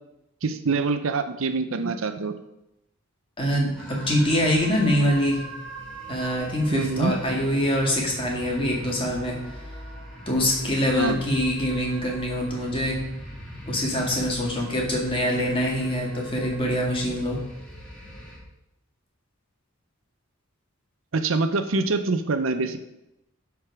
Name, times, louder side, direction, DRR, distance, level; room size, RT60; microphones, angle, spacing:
voice 1, 0.4-2.3 6.7-7.1 11.0-11.2 21.1-22.8, right 3 dB, 70° right, 9 dB, 0.6 m, -25 dB
voice 2, 3.4-5.4 6.1-9.6 10.3-13.0 13.7-17.4, equal, 25° left, -2 dB, 2.2 m, -24 dB
sound 1, 3.7-18.4, right 1 dB, 5° left, 2.3 m, -41 dB
12.5 x 4.7 x 4.8 m, 0.88 s
head